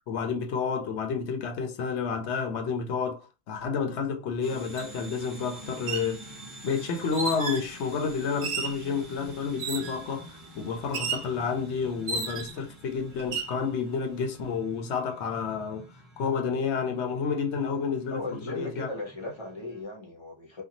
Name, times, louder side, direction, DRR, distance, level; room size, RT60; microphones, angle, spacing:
voice 1, 0.1-6.2 6.6-15.9 16.2-18.2 18.5-18.9, left 5 dB, 75° left, 0.9 m, -30 dB
sound 1, 4.4-19.8, right 1 dB, ahead, 1.1 m, -48 dB
sound 2, 4.8-4.9 5.7-6.1 7.1-7.7 8.4-8.8 9.6-10.0 10.9-11.3 12.1-12.6 13.2-13.6, right 5 dB, 75° right, 0.9 m, -33 dB
voice 2, 18.1-20.6, left 2 dB, 25° left, 0.9 m, -37 dB
2.6 x 2.2 x 2.8 m
omnidirectional pair, 1.2 m